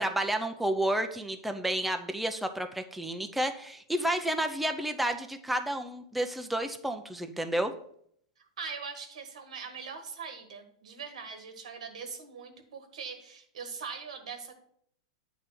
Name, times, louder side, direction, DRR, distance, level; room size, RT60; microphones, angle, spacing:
voice 1, 0.0-7.7, right 1 dB, ahead, 6 dB, 0.5 m, -31 dB
voice 2, 8.4-14.6, right 5 dB, 85° right, 7 dB, 1.4 m, -42 dB
8.4 x 3.3 x 5.9 m, 0.66 s
hypercardioid pair, 135°, 4 cm